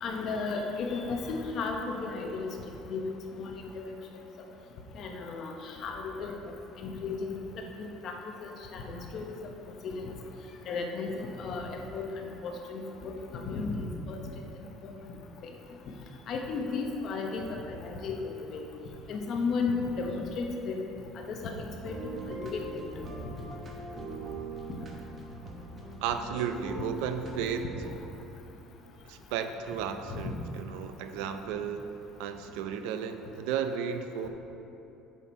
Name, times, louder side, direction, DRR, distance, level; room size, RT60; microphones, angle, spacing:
voice 1, 0.0-2.5 2.9-3.9 4.9-6.3 6.8-7.4 7.8-8.1 8.4-9.3 9.8-10.1 10.7-14.2 15.4-15.5 16.3-18.6 19.1-20.8 21.3-21.9 22.3-23.1 30.1-30.2, left 4 dB, 45° left, 2 dB, 0.9 m, -34 dB
sound 1, 21.7-27.9, right 2 dB, 25° right, 0.9 m, -41 dB
voice 2, 26.0-27.6 29.0-31.9 32.2-34.3, right 8 dB, 85° right, 8 dB, 0.5 m, -34 dB
7.1 x 6.0 x 4.6 m, 3.0 s
cardioid pair, 155°, 0 cm